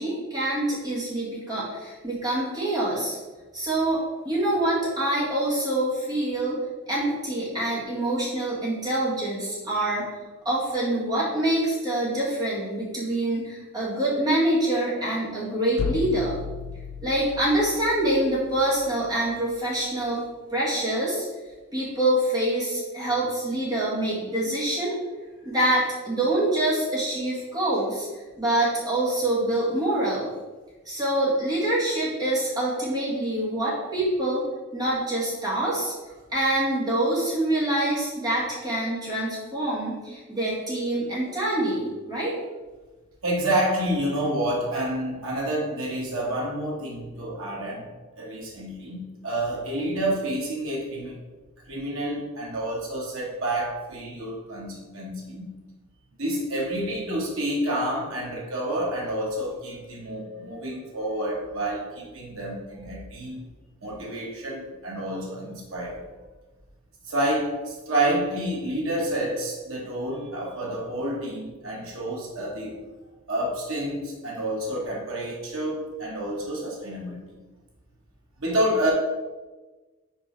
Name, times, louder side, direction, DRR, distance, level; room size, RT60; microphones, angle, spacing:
voice 1, 0.0-3.2 3.5-6.6 6.9-10.1 10.5-16.4 17.0-20.2 20.5-21.2 21.7-25.0 25.4-28.1 28.4-30.3 30.9-34.4 34.7-35.9 36.3-42.3, right 1 dB, 20° right, -7 dB, 2.0 m, -25 dB
sound 1, 15.8-19.6, left 5 dB, 80° left, 0.4 m, -35 dB
voice 2, 43.2-47.9 48.2-51.2 51.7-55.5 56.2-63.5 63.8-66.0 67.1-72.8 73.3-77.4 78.4-78.9, right 1 dB, 70° right, -3 dB, 1.7 m, -29 dB
5.2 x 4.6 x 4.7 m, 1.2 s
head